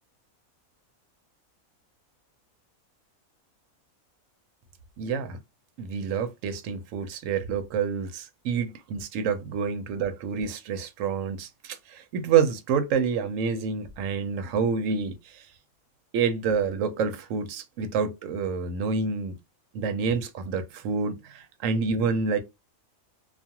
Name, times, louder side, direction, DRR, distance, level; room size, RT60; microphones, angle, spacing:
voice 1, 5.0-5.4 5.8-15.5 16.1-19.4 19.7-22.4, right 6 dB, 70° right, 0.9 m, -28 dB
2.4 x 2.3 x 2.8 m
omnidirectional pair, 1.5 m